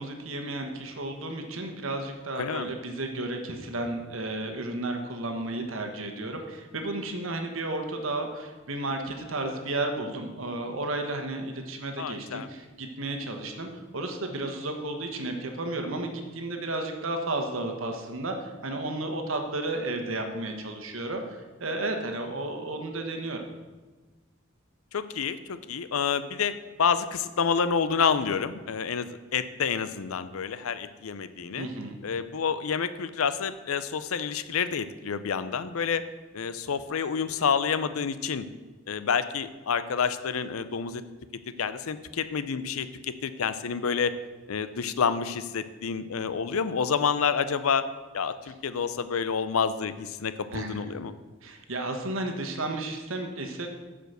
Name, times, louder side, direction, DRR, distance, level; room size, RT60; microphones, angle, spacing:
voice 1, 0.0-23.4 31.6-32.0 50.5-51.0 51.4-53.7, right 2 dB, 75° right, 4 dB, 1.2 m, -33 dB
voice 2, 2.4-2.7 12.0-12.5 24.9-31.7 32.0-36.0 36.3-38.4 38.9-41.0 41.6-44.1 44.5-47.9 48.1-51.2, left 6 dB, 90° left, 12 dB, 0.5 m, -28 dB
9.0 x 5.1 x 6.6 m, 1.3 s
head